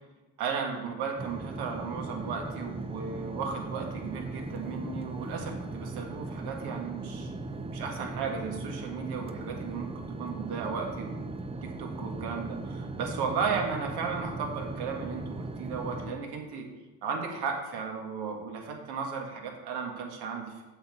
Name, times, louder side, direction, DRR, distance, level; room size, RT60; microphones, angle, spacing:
voice 1, 0.4-7.3 7.7-11.3 11.6-16.7 17.0-20.5, right 5 dB, 70° right, 2 dB, 2.0 m, -35 dB
sound 1, 1.2-16.1, right 2 dB, 15° right, 0.6 m, -38 dB
7.7 x 4.5 x 6.8 m, 1.2 s
supercardioid pair, 90°, 41 cm